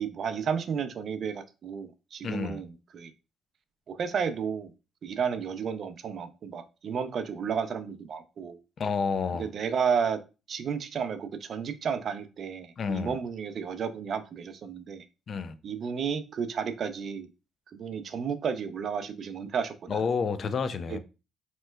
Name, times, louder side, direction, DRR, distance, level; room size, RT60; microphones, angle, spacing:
voice 1, 0.0-3.1 3.9-4.7 5.0-8.6 9.3-10.2 10.5-15.0 15.6-17.3 17.7-20.0 20.9-21.0, right 6 dB, 60° right, 0.4 m, -32 dB
voice 2, 2.2-2.6 8.8-9.5 12.8-13.2 15.3-15.5 19.9-21.0, left 5 dB, 55° left, 0.3 m, -29 dB
3.1 x 2.9 x 2.2 m
cardioid pair, 90°, 0 cm